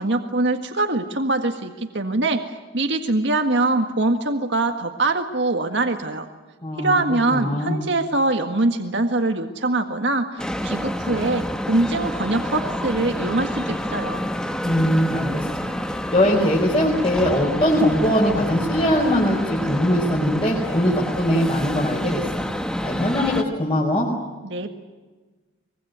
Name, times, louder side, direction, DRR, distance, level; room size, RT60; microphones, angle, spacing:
voice 1, 0.0-6.3 6.8-14.2 24.4-24.7, right 2 dB, 65° right, 5 dB, 1.8 m, -23 dB
voice 2, 6.6-7.0 7.3-7.7 14.6-22.4 22.8-24.1, equal, 30° left, -4 dB, 5.1 m, -21 dB
sound 1, 10.4-23.4, equal, 5° left, 1.3 m, -28 dB
24.5 x 23.0 x 9.3 m, 1.3 s
head